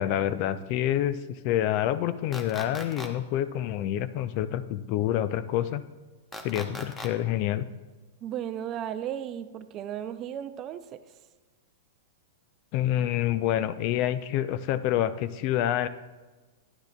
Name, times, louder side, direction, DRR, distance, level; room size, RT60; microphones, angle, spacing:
voice 1, 0.0-5.8 6.4-7.7 12.7-15.9, left 12 dB, 50° left, 14 dB, 0.4 m, -27 dB
sound 1, 2.3-3.1 6.3-7.1, left 1 dB, 15° left, 0.9 m, -38 dB
voice 2, 8.2-11.0, right 10 dB, 35° right, 11 dB, 0.5 m, -35 dB
10.5 x 9.5 x 2.3 m, 1.3 s
hypercardioid pair, 105°, 0 cm